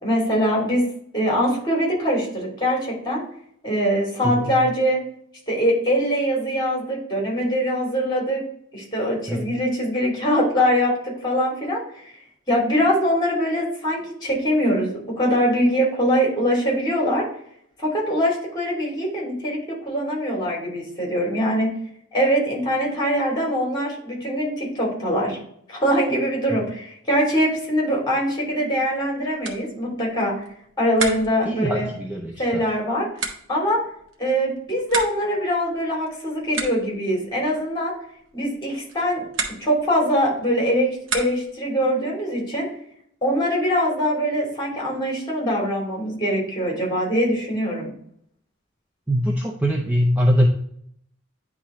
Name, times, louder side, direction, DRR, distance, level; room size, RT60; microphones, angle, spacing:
voice 1, 0.0-0.8 1.1-3.2 3.6-5.0 5.5-8.4 8.7-11.8 12.5-17.2 17.8-21.7 22.1-25.4 25.7-30.4 30.8-31.9 32.4-33.1 33.5-33.8 34.2-37.9 38.3-40.9 41.1-42.7 43.2-47.9, equal, 20° left, -3 dB, 2.7 m, -23 dB
voice 2, 4.2-4.6 9.3-9.5 26.5-26.6 31.5-32.6 49.1-50.5, equal, 10° right, -1 dB, 0.6 m, -22 dB
sound 1, 28.9-41.7, right 4 dB, 70° right, 1.1 m, -36 dB
9.9 x 3.7 x 3.0 m, 0.68 s
head